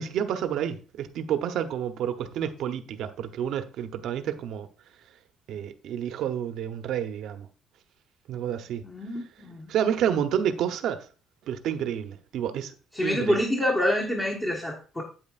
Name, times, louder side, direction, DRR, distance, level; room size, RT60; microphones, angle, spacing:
voice 1, 0.0-4.7 5.5-7.5 8.3-8.8 9.7-11.1 11.5-12.7 13.0-13.4, right 9 dB, 60° right, 0.9 m, -29 dB
voice 2, 8.8-9.7 12.9-15.0, left 1 dB, 15° left, 1.4 m, -27 dB
8.8 x 8.7 x 2.5 m
cardioid pair, 170°, 0 cm